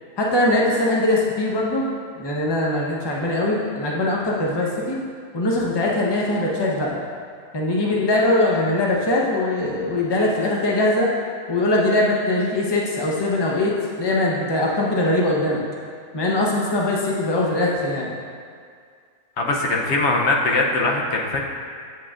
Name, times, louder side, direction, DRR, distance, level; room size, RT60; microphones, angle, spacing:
voice 1, 0.2-1.9 2.2-5.0 5.3-7.0 7.5-11.1 11.5-13.7 14.0-15.6 16.1-18.1, left 1 dB, 25° left, -3 dB, 0.7 m, -21 dB
voice 2, 19.4-21.4, left 2 dB, 60° left, -1 dB, 0.8 m, -21 dB
7.7 x 7.5 x 2.4 m, 2.1 s
omnidirectional pair, 1.5 m